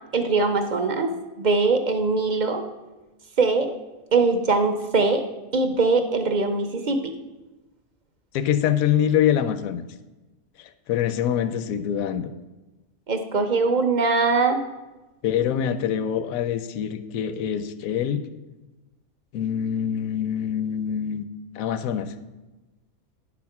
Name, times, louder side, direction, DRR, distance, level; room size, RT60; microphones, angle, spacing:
voice 1, 0.1-2.6 3.4-3.8 4.1-7.1 13.1-14.6, right 3 dB, 45° right, 6 dB, 0.6 m, -22 dB
voice 2, 8.3-9.8 10.9-12.3 15.2-18.2 19.3-21.2 21.5-22.1, left 9 dB, 75° left, 11 dB, 1.0 m, -24 dB
10.5 x 4.2 x 5.8 m, 1.1 s
omnidirectional pair, 1.5 m